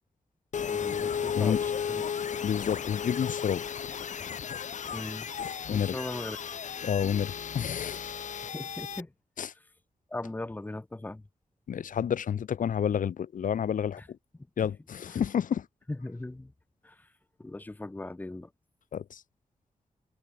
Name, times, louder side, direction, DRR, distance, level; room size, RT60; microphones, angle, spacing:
sound 1, 0.5-9.0, left 7 dB, 70° left, 1.5 m, -34 dB
voice 1, 0.7-2.0 4.9-5.3 5.7-6.4 8.5-9.1 10.1-11.2 14.0-14.1 15.9-16.5 16.8-17.1 17.4-18.5, left 2 dB, 15° left, 1.3 m, -39 dB
voice 2, 2.4-3.6 5.7-5.9 6.8-8.1 9.4-9.5 11.7-14.2 14.6-15.7 18.9-19.2, left 8 dB, 90° left, 1.2 m, -29 dB
wide cardioid pair, 170°, 13 cm